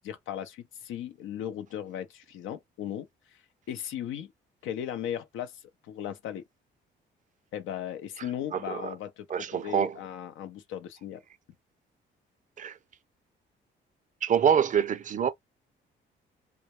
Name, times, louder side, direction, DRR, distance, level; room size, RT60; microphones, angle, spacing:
voice 1, 0.0-3.4 3.7-4.3 4.6-6.4 7.5-11.2, left 10 dB, 85° left, 0.5 m, -37 dB
voice 2, 8.5-8.9 9.3-10.0 12.6-12.7 14.2-15.3, right 8 dB, 40° right, 0.5 m, -25 dB
2.2 x 2.1 x 2.8 m
cardioid pair, 90°, 20 cm